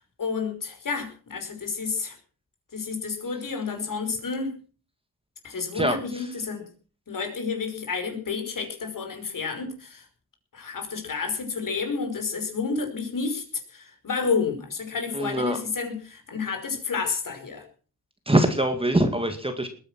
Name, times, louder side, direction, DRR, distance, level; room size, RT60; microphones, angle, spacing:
voice 1, 0.0-2.2 2.7-4.6 5.4-6.6 7.1-10.1 10.5-13.4 13.7-17.6, left 5 dB, 50° left, 4 dB, 5.4 m, -30 dB
voice 2, 5.7-6.2 15.1-15.6 18.3-19.7, right 1 dB, 15° right, 7 dB, 2.1 m, -23 dB
20.5 x 10.0 x 6.2 m, 0.40 s
wide cardioid pair, 120°, 41 cm